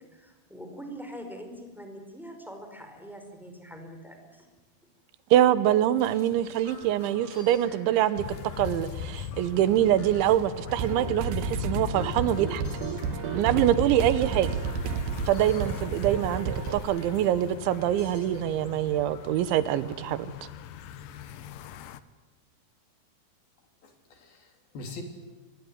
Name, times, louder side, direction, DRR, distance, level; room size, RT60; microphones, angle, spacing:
voice 1, 0.0-4.5, equal, ahead, 4 dB, 4.5 m, -43 dB
voice 2, 5.3-8.2 8.6-12.6 13.3-14.5 15.3-20.3, right 12 dB, 85° right, 15 dB, 3.4 m, -24 dB
sound 1, 5.5-18.4 19.1-19.6 20.2-20.3 20.6-21.2, left 2 dB, 40° left, 8.2 m, -49 dB
sound 2, 8.2-22.0, left 8 dB, 75° left, 2.0 m, -40 dB
sound 3, 10.7-16.8, right 5 dB, 65° right, 2.8 m, -31 dB
voice 3, 16.1-16.7 17.0-19.0 23.8-25.0, left 2 dB, 55° left, 4 dB, 4.9 m, -45 dB
25.5 x 21.0 x 9.7 m, 1.2 s
omnidirectional pair, 5.3 m